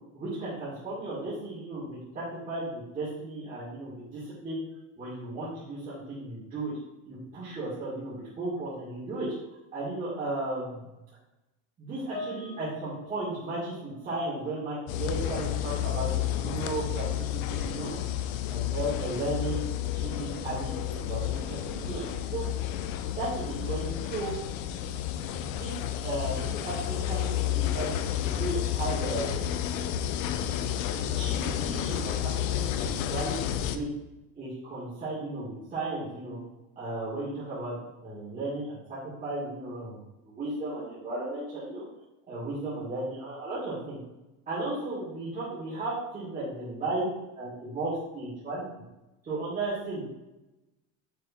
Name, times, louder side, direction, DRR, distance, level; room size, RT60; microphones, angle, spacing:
voice 1, 0.1-4.6 5.0-6.7 7.0-9.3 9.7-10.8 11.8-18.0 18.5-19.6 19.9-22.5 23.2-24.3 25.4-29.4 29.8-30.7 31.0-33.9 34.4-36.4 36.8-41.8 42.3-44.0 44.5-47.1 47.3-48.7 49.2-50.0, right 2 dB, 20° right, -10 dB, 2.2 m, -35 dB
Piano, 12.1-14.8 15.0-15.4 16.1-16.3, left 2 dB, 25° left, 0.7 m, -45 dB
sound 1, 14.9-33.8, left 11 dB, 85° left, 0.7 m, -31 dB
6.7 x 3.5 x 4.3 m, 0.99 s
cardioid pair, 150°, 39 cm